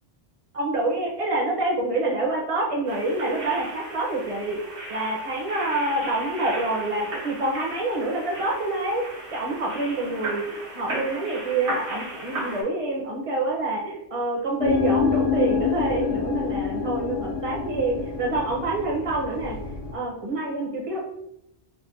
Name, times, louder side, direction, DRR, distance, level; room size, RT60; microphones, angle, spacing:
voice 1, 0.5-4.6 4.9-19.6 19.9-21.0, right 2 dB, 35° right, -2 dB, 0.6 m, -27 dB
sound 1, 2.9-12.6, right 2 dB, 80° right, 1.3 m, -36 dB
sound 2, 14.6-19.9, left 6 dB, 55° left, 0.8 m, -27 dB
4.8 x 2.1 x 2.5 m, 0.80 s
omnidirectional pair, 1.1 m